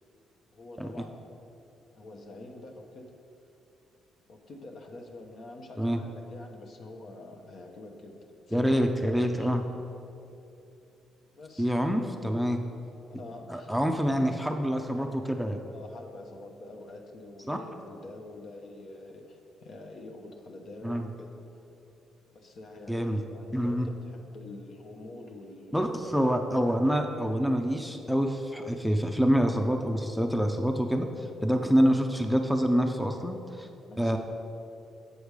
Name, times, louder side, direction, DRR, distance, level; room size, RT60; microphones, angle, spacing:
voice 1, 0.5-1.2 1.9-3.1 4.3-8.8 9.2-9.5 11.3-11.8 13.1-13.8 15.7-21.3 22.3-26.3 33.8-34.2, left 2 dB, 60° left, 2 dB, 0.9 m, -46 dB
voice 2, 8.5-9.6 11.6-12.6 13.5-15.6 17.5-17.6 20.8-21.1 22.9-23.2 23.5-23.9 25.7-31.1 31.4-33.7 34.0-34.2, equal, ahead, 4 dB, 0.5 m, -26 dB
8.0 x 5.1 x 4.8 m, 2.8 s
cardioid pair, 90°, 0 cm